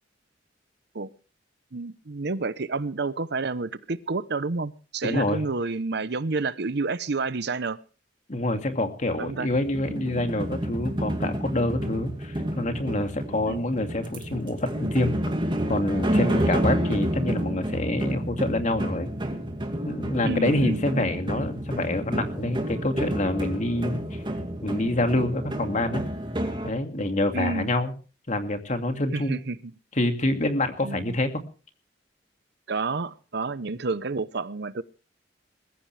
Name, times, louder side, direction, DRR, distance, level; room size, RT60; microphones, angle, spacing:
voice 1, 1.7-7.8 9.2-9.5 13.5-13.6 16.4-16.5 20.2-21.2 27.3-27.7 29.1-29.7 30.8-31.2 32.7-34.8, right 3 dB, 65° right, 15 dB, 0.8 m, -30 dB
voice 2, 5.0-5.4 8.3-15.1 15.7-19.1 19.9-24.2 24.6-26.0 26.6-27.9 28.3-29.4 30.0-31.3, left 1 dB, 40° left, 6 dB, 2.3 m, -27 dB
sound 1, 9.5-26.7, equal, 25° right, 2.3 m, -29 dB
21.0 x 15.0 x 3.4 m, 0.37 s
head